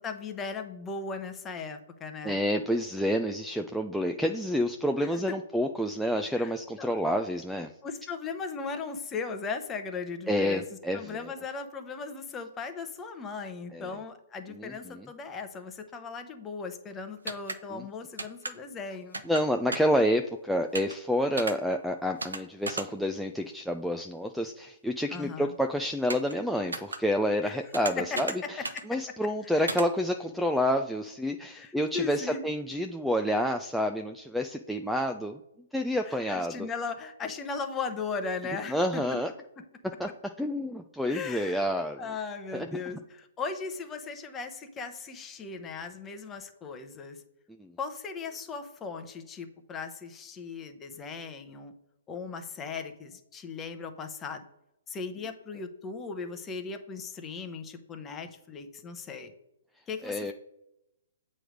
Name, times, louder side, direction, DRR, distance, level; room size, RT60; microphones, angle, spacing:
voice 1, 0.0-2.4 5.0-5.2 6.3-7.0 7.8-10.6 10.9-19.2 25.1-25.5 27.4-27.6 28.1-28.2 28.7-28.8 29.4-29.6 31.5-32.5 36.1-39.0 41.1-41.6 42.0-47.2 47.8-51.7 52.1-54.4 54.9-59.3 59.9-60.3, left 4 dB, 20° left, 7 dB, 0.8 m, -37 dB
voice 2, 2.2-7.7 10.3-11.3 13.7-14.0 14.5-15.1 17.7-17.8 19.3-28.6 28.9-35.4 35.7-36.7 38.7-39.3 40.0-40.1 40.4-42.0 42.5-42.7 47.6-47.7 60.0-60.3, equal, ahead, 4 dB, 0.4 m, -29 dB
sound 1, 17.3-17.6 18.2-18.5 19.1-19.4 19.7-20.0 20.7-20.9 21.4-21.5 22.2-22.4 22.7-22.9 26.1-26.3 26.7-27.0 27.7-28.4 28.6-28.8 29.7-29.9, right 3 dB, 90° right, 0.7 m, -34 dB
7.6 x 3.2 x 5.0 m, 0.88 s
hypercardioid pair, 135°, 0 cm